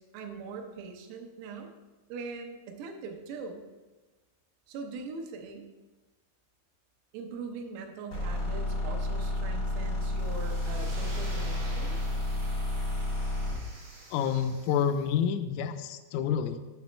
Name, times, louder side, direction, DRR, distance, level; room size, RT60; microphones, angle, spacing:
voice 1, 0.0-1.7 2.1-3.7 4.7-5.7 7.1-12.1, right 4 dB, 85° right, 3 dB, 3.5 m, -41 dB
sound 1, 8.1-13.7, left 1 dB, 65° left, 1.1 m, -31 dB
sound 2, 10.1-15.1, right 1 dB, 65° right, 1.1 m, -47 dB
voice 2, 14.1-16.6, left 8 dB, 85° left, 9 dB, 3.0 m, -28 dB
10.5 x 6.0 x 3.2 m, 1.2 s
omnidirectional pair, 5.8 m